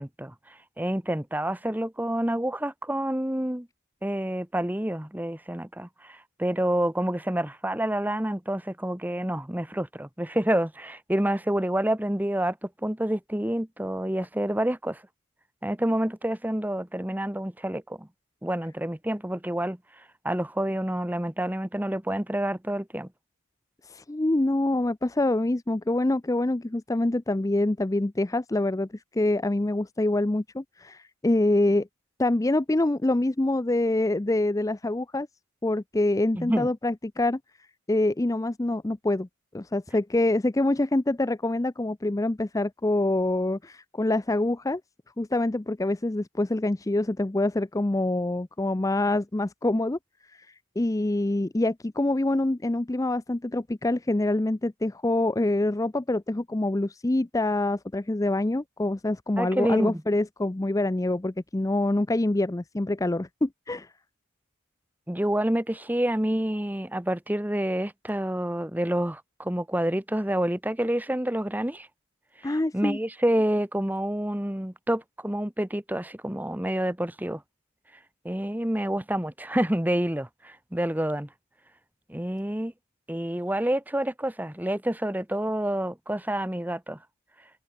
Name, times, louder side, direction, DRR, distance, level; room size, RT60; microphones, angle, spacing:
voice 1, 0.0-3.7 4.0-15.0 15.6-18.1 18.4-23.1 36.3-36.7 59.4-60.0 65.1-71.9 72.4-77.4 78.2-81.3 82.1-82.7 83.1-87.0, right 1 dB, 5° right, 0.9 m, -28 dB
voice 2, 23.8-31.9 32.2-35.3 35.6-37.4 37.9-39.3 39.5-44.8 45.2-63.9 72.4-73.0, left 2 dB, 15° left, 0.4 m, -26 dB
head